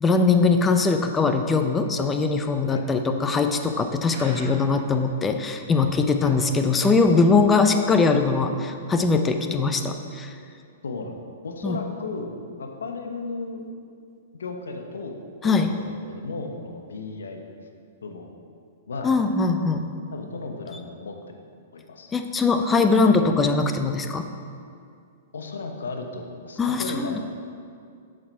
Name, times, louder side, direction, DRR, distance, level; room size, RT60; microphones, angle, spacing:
voice 1, 0.0-10.3 11.6-11.8 15.4-15.7 19.0-19.8 22.1-24.3 26.6-27.2, left 4 dB, 15° left, 7 dB, 0.6 m, -21 dB
sound 1, 4.1-5.0 5.4-5.5 5.7-5.8 6.3-6.4, right 3 dB, 60° right, 1.7 m, -42 dB
voice 2, 11.4-13.6 14.3-15.2 15.4-17.4 18.0-18.4 18.9-19.2 20.1-21.2 21.7-22.1 25.3-27.2, left 3 dB, 85° left, 4 dB, 1.0 m, -35 dB
8.3 x 6.5 x 4.5 m, 2.3 s
hypercardioid pair, 125°, 0 cm